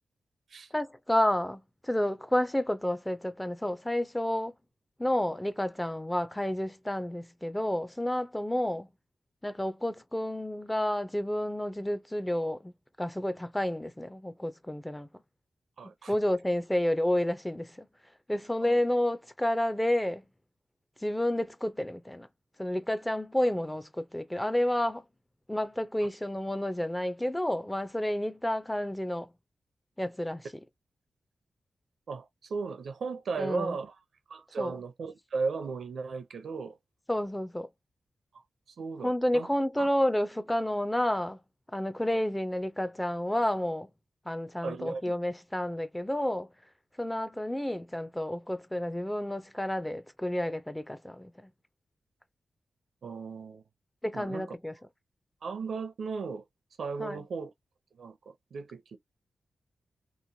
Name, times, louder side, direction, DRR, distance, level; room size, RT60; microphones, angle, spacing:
voice 1, 0.7-4.5 5.0-8.9 9.4-12.7 13.0-15.1 16.1-17.9 18.3-20.2 21.0-22.3 22.6-25.0 25.5-29.3 30.0-30.5 33.4-33.8 34.6-34.8 37.1-37.7 39.0-41.4 41.7-43.9 44.3-46.5 47.0-51.5 54.0-54.7 57.0-57.2, left 1 dB, 10° left, 0.4 m, -30 dB
voice 2, 15.8-16.2 18.6-18.8 32.1-34.0 34.3-36.8 38.7-39.5 39.8-39.9 44.6-45.0 53.0-53.6 54.1-54.5 55.4-56.4 56.8-57.5 58.0-59.0, right 4 dB, 80° right, 0.5 m, -36 dB
3.0 x 2.1 x 2.6 m
cardioid pair, 75°, 0 cm